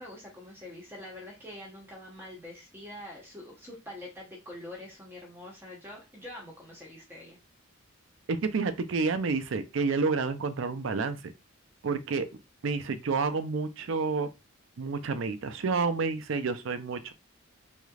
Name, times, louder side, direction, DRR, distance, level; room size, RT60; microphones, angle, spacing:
voice 1, 0.0-7.4, left 1 dB, 10° right, 0.9 m, -45 dB
voice 2, 8.3-11.2 11.8-12.3 12.6-14.3 14.8-17.1, right 4 dB, 60° right, 0.4 m, -29 dB
3.5 x 3.2 x 2.4 m
head